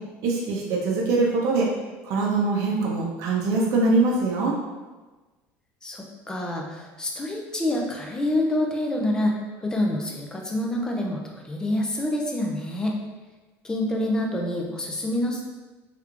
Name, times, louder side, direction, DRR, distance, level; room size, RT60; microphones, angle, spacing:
voice 1, 0.2-1.7 2.0-4.5, right 3 dB, 55° right, -3 dB, 0.6 m, -23 dB
voice 2, 5.8-13.0 13.6-15.4, left 1 dB, 10° left, 0 dB, 0.4 m, -27 dB
3.3 x 3.0 x 2.4 m, 1.2 s
cardioid pair, 155°, 6 cm